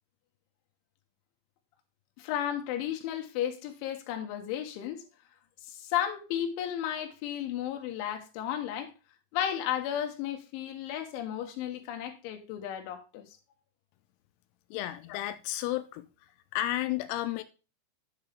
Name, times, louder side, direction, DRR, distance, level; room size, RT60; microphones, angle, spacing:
voice 1, 2.2-5.0 5.6-8.9 9.3-13.2 15.1-15.2, left 10 dB, 75° left, 3.5 m, -34 dB
voice 2, 14.7-16.1 16.5-17.4, left 14 dB, 90° left, 3.4 m, -32 dB
10.0 x 6.7 x 3.4 m
omnidirectional pair, 6.0 m